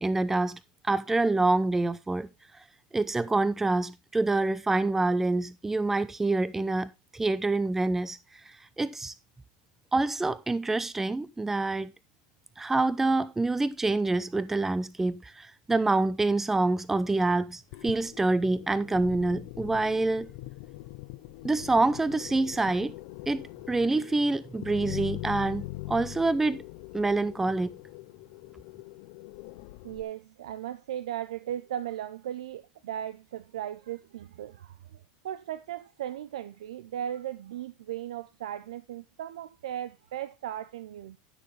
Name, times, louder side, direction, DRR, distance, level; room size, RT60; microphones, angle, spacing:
voice 1, 0.0-2.3 2.9-8.2 8.5-9.1 9.9-11.9 12.6-20.3 21.4-23.0 23.3-26.6 26.9-27.7, right 2 dB, 10° right, 0.6 m, -26 dB
sound 1, 17.7-30.0, left 18 dB, 65° left, 0.7 m, -42 dB
voice 2, 29.8-41.2, right 11 dB, 85° right, 0.6 m, -37 dB
13.5 x 6.5 x 3.3 m
supercardioid pair, 110°, 3 cm